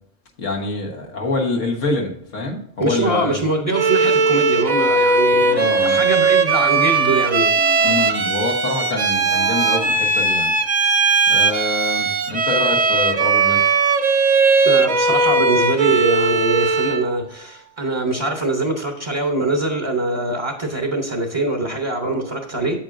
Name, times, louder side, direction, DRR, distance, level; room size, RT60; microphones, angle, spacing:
voice 1, 0.4-3.4 5.5-6.0 7.8-10.5 11.3-13.7, left 2 dB, 90° left, 1 dB, 1.6 m, -25 dB
voice 2, 2.8-7.5 14.6-22.8, right 2 dB, 25° right, 3 dB, 0.9 m, -23 dB
Bowed string instrument, 3.7-17.1, right 4 dB, 45° right, 0.6 m, -18 dB
sound 1, 4.0-4.5 5.4-6.1 7.5-8.1 9.1-10.1, left 1 dB, 70° left, 2.4 m, -35 dB
8.7 x 7.6 x 2.6 m, 0.73 s
omnidirectional pair, 1.3 m